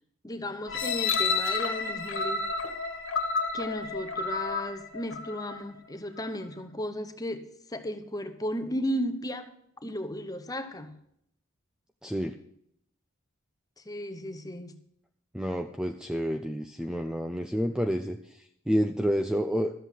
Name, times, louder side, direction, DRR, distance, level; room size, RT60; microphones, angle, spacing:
voice 1, 0.2-2.4 3.5-9.5 9.8-11.0 13.8-14.7, equal, 15° left, 1.0 m, -35 dB
sound 1, 0.7-5.6 6.2-6.3, left 4 dB, 60° left, 1.7 m, -30 dB
voice 2, 12.0-12.4 15.3-19.7, equal, 5° right, 0.5 m, -29 dB
13.0 x 7.9 x 6.2 m
head